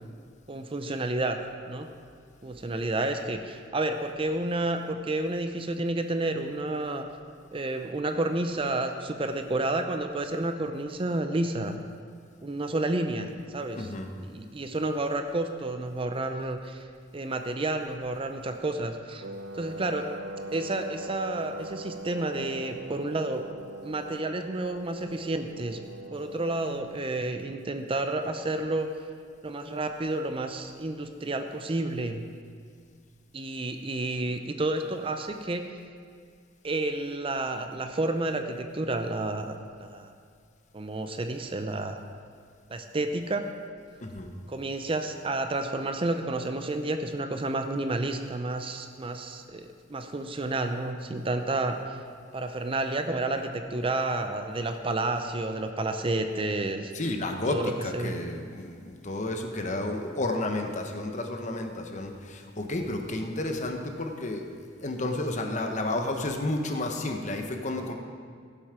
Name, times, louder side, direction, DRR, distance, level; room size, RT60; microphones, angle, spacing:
voice 1, 0.5-1.4 1.7-1.9 2.4-7.0 7.5-11.8 12.4-13.9 14.2-16.9 17.1-19.2 19.5-20.1 20.5-23.4 23.8-25.8 26.1-28.9 29.4-32.2 33.3-35.7 36.6-40.1 40.7-42.0 42.7-43.5 44.5-52.0 52.3-56.9 57.5-58.2, right 2 dB, 30° right, 7 dB, 0.6 m, -30 dB
voice 2, 13.8-14.1 44.0-44.3 56.9-64.5 64.8-67.9, left 2 dB, 40° left, 4 dB, 1.0 m, -31 dB
Wind instrument woodwind instrument, 19.2-26.8, right 1 dB, 75° right, 0.8 m, -41 dB
16.0 x 7.3 x 5.0 m, 2.1 s
head